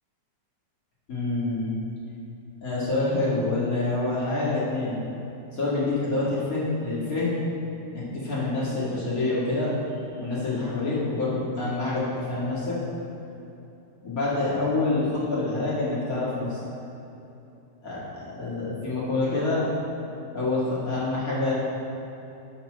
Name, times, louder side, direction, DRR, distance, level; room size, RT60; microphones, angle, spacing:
voice 1, 1.1-1.7 2.6-5.0 5.5-7.3 7.9-9.7 10.1-12.8 14.0-16.6 17.8-19.6 20.3-21.5, left 2 dB, 55° left, -7 dB, 2.4 m, -27 dB
7.3 x 5.5 x 6.2 m, 2.9 s
omnidirectional pair, 1.9 m